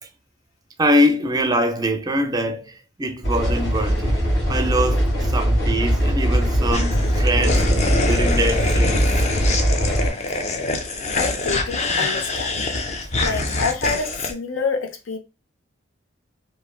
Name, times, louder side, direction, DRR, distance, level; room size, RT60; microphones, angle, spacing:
voice 1, 0.8-4.2 4.5-9.3, equal, 20° right, 0.4 m, -23 dB
sound 1, 3.2-10.1, equal, 65° left, 1.6 m, -20 dB
sound 2, 6.7-14.3, left 2 dB, 35° left, 0.5 m, -25 dB
voice 2, 11.1-12.5 13.2-15.2, left 4 dB, 85° left, 0.7 m, -27 dB
3.1 x 2.7 x 2.3 m
head